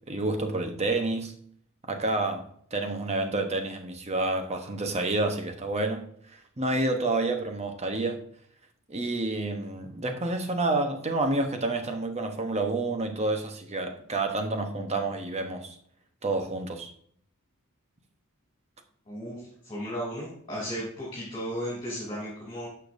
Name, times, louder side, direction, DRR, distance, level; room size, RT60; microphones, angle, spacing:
voice 1, 0.1-1.3 1.9-2.5 2.7-6.0 6.6-8.2 8.9-15.8 16.2-16.9, right 2 dB, 30° right, 5 dB, 1.0 m, -29 dB
voice 2, 19.0-22.7, equal, 25° left, -6 dB, 3.2 m, -35 dB
11.5 x 6.8 x 2.6 m, 0.63 s
head